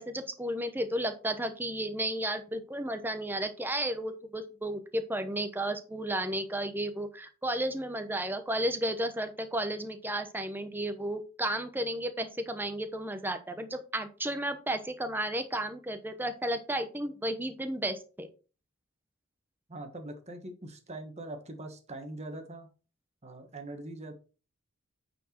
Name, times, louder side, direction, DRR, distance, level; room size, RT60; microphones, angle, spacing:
voice 1, 0.0-18.3, right 1 dB, 10° right, 8 dB, 0.9 m, -33 dB
voice 2, 19.7-22.7 23.2-24.1, right 2 dB, 35° right, 6 dB, 1.4 m, -42 dB
8.9 x 4.5 x 4.4 m, 0.35 s
head